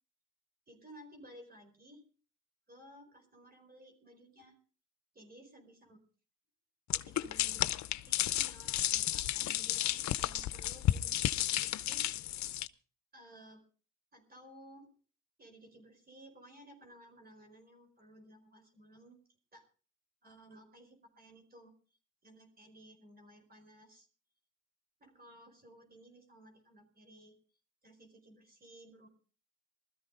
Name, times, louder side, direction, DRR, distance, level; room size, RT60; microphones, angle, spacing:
voice 1, 0.7-2.0 2.7-4.6 5.1-6.0 6.9-12.4 13.1-13.6 14.1-14.9 15.4-19.2 19.5-19.6 20.2-21.7 22.2-24.1 25.0-27.4 27.8-29.1, right 1 dB, 30° right, 4 dB, 4.6 m, -57 dB
sound 1, 6.9-12.7, left 13 dB, 65° left, 0.7 m, -32 dB
20.0 x 13.5 x 3.8 m, 0.40 s
cardioid pair, 90°, 30 cm